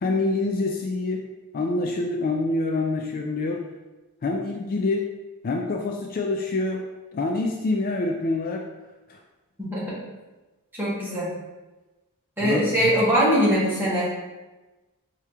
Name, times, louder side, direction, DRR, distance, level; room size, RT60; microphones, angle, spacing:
voice 1, 0.0-1.3 1.5-3.6 4.2-5.1 5.4-6.8 7.1-8.6 9.1-9.2 12.4-12.9, left 2 dB, 40° left, 1 dB, 0.3 m, -26 dB
voice 2, 9.6-10.0 10.7-11.3 12.4-14.1, equal, 10° right, -8 dB, 1.4 m, -22 dB
4.7 x 2.9 x 3.5 m, 1.1 s
head